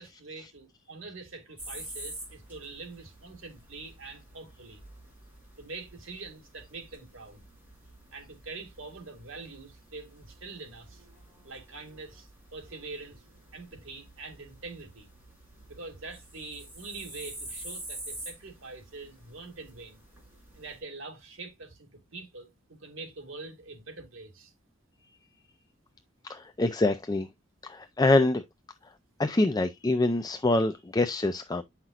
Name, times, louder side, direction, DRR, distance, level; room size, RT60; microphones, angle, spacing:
voice 1, 0.0-4.8 5.6-7.4 8.1-11.1 11.4-13.2 13.5-15.1 15.7-20.0 20.5-24.5, right 3 dB, 80° right, 2.2 m, -44 dB
sound 1, 1.6-20.8, right 1 dB, 10° right, 6.1 m, -48 dB
voice 2, 26.3-27.3 27.6-28.4 29.2-31.6, left 2 dB, 20° left, 0.5 m, -25 dB
9.1 x 5.8 x 2.4 m
head